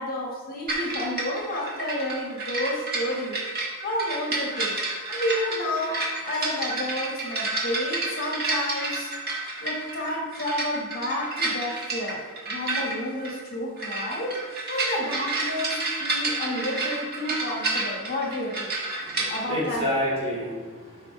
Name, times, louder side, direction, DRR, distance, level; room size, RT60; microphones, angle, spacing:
voice 1, 0.0-3.4 3.8-4.7 5.1-9.1 9.6-12.2 12.5-14.4 14.7-18.7 19.2-19.9, left 1 dB, 40° left, -2 dB, 2.0 m, -30 dB
sound 1, 0.7-19.4, right 2 dB, 45° right, 1.6 m, -30 dB
voice 2, 19.0-21.1, equal, 30° right, -6 dB, 2.7 m, -30 dB
12.5 x 5.7 x 3.6 m, 1.4 s
head